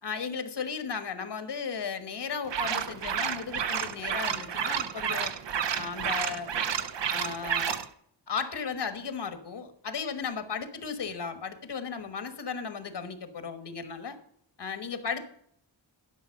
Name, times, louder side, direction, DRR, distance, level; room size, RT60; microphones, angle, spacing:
voice 1, 0.0-5.3 5.7-6.5 7.1-7.8 8.3-14.2 14.6-15.3, left 6 dB, 65° left, 10 dB, 1.3 m, -35 dB
sound 1, 2.5-7.9, right 8 dB, 70° right, 0.8 m, -30 dB
11.0 x 6.1 x 6.4 m, 0.68 s
wide cardioid pair, 165°, 44 cm